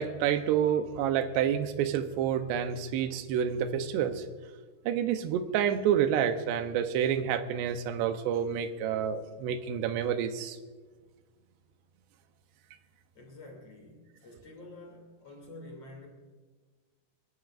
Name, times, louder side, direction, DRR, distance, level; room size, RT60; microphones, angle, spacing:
voice 1, 0.0-4.3 4.9-10.6, right 9 dB, 90° right, 8 dB, 3.0 m, -28 dB
voice 2, 13.1-16.1, left 2 dB, 40° left, 0 dB, 3.5 m, -48 dB
28.5 x 11.5 x 2.5 m, 1.4 s
omnidirectional pair, 4.8 m